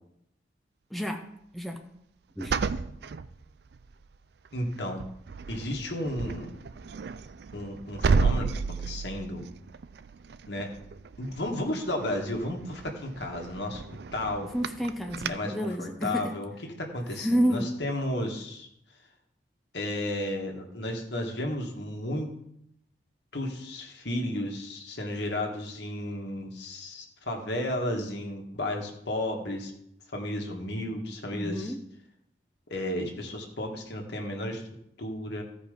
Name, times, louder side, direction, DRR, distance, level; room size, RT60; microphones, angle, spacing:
voice 1, 0.9-1.2 1.5-1.8 2.4-2.5 14.5-16.3 17.2-17.7 31.3-31.8, equal, ahead, 3 dB, 0.6 m, -29 dB
sound 1, 2.4-3.9 4.4-4.7 5.0-15.3, right 5 dB, 60° right, 0.4 m, -33 dB
voice 2, 4.5-5.0 5.5-6.6 7.5-9.4 10.5-10.7 11.2-13.8 14.1-14.5 15.3-16.5 16.8-18.7 19.7-22.3 23.3-29.7 30.1-31.7 32.7-34.6 35.0-35.4, left 1 dB, 65° left, 2 dB, 1.8 m, -33 dB
15.0 x 5.2 x 5.1 m, 0.76 s
head